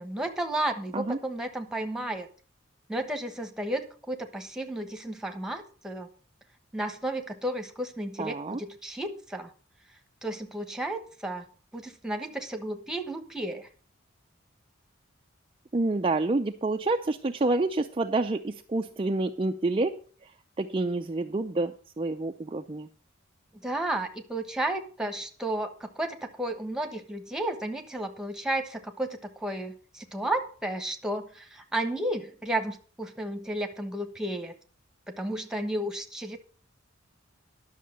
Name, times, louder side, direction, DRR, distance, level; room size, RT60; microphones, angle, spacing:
voice 1, 0.0-2.3 2.9-6.1 6.7-9.5 10.2-11.5 11.7-13.7 23.6-34.6 35.1-36.4, right 1 dB, 5° right, 5 dB, 1.2 m, -33 dB
voice 2, 8.2-8.6 15.7-20.0 20.6-22.9, right 2 dB, 25° right, 5 dB, 0.5 m, -28 dB
11.0 x 6.5 x 6.4 m, 0.41 s
head